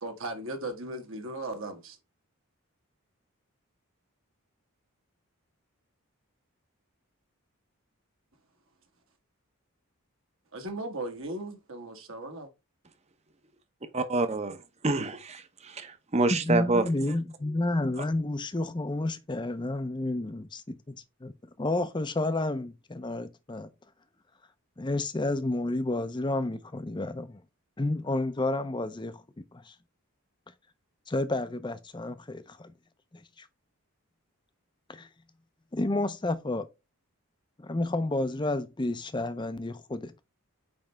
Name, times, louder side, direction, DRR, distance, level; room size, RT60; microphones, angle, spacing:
voice 1, 0.0-2.0 10.5-12.5, right 1 dB, 65° right, 1.4 m, -37 dB
voice 2, 13.9-14.6 14.8-17.1 18.0-18.1, right 2 dB, 30° right, 0.7 m, -28 dB
voice 3, 16.3-20.9 21.2-21.3 21.6-23.7 24.8-27.4 27.8-29.2 29.5-29.7 31.1-32.7 33.4-33.5 34.9-35.1 35.7-36.7 37.6-40.3, left 2 dB, 20° left, 0.5 m, -30 dB
8.7 x 3.3 x 3.3 m
head